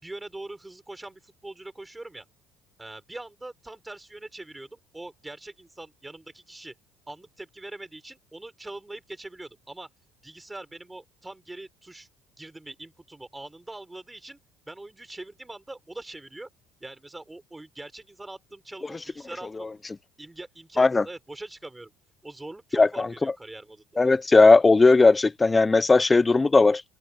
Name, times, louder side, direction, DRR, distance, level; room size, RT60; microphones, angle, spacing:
voice 1, 0.0-2.2 2.8-6.7 7.1-9.9 10.2-12.1 12.4-14.4 14.7-16.5 16.8-19.7 20.2-21.9 22.2-23.8, right 2 dB, 10° right, 4.3 m, -42 dB
voice 2, 22.7-23.1 24.0-26.8, left 3 dB, 20° left, 0.6 m, -17 dB
open air
hypercardioid pair, 70°, 0 cm